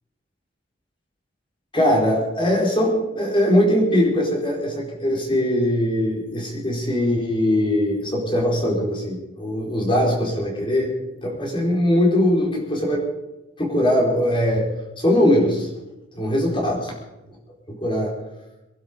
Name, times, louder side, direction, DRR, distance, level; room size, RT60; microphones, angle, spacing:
voice 1, 1.7-10.9 11.2-13.0 13.6-14.7 15.0-15.7 16.1-16.9 17.7-18.1, left 1 dB, 25° left, -2 dB, 4.5 m, -21 dB
24.0 x 11.5 x 5.3 m, 1.0 s
head